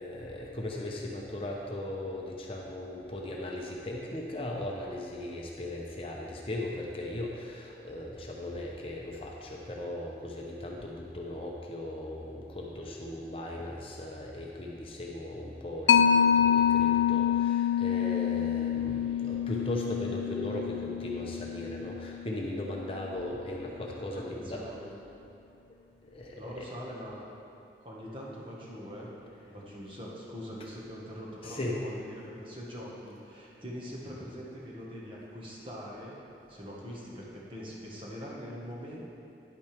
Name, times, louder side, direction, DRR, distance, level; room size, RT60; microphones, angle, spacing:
voice 1, 0.0-24.6 26.0-26.7 31.4-31.8, left 1 dB, 30° left, -2 dB, 0.7 m, -38 dB
Mallet percussion, 15.9-22.9, left 8 dB, 90° left, 0.4 m, -27 dB
voice 2, 24.1-24.9 26.3-27.3 27.8-29.1 29.5-36.2 36.5-39.2, equal, 30° right, -5 dB, 1.5 m, -43 dB
10.5 x 8.7 x 3.5 m, 2.6 s
head